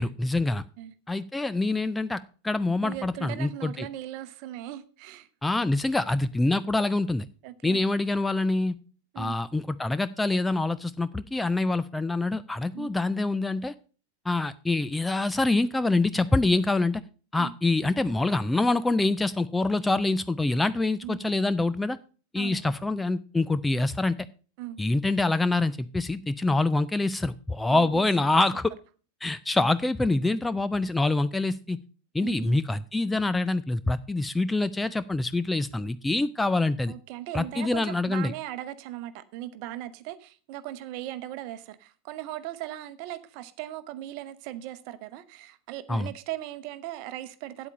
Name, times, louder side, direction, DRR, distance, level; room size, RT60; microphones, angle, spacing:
voice 1, 0.0-0.6 1.1-3.9 5.4-7.3 7.6-8.8 9.2-13.7 14.3-17.0 17.3-22.0 22.3-24.1 24.8-28.7 29.2-31.8 32.1-36.9 37.3-38.3 45.9-46.1, left 2 dB, 5° left, 14 dB, 0.4 m, -25 dB
voice 2, 2.8-5.3 7.4-7.8 9.1-9.4 12.7-12.9 17.4-17.5 21.0-21.3 22.3-22.7 24.6-24.8 27.7-28.1 32.2-32.6 36.9-47.7, right 13 dB, 45° right, 13 dB, 0.9 m, -38 dB
8.8 x 8.2 x 5.3 m, 0.38 s
figure-of-eight pair, 90°, 0 cm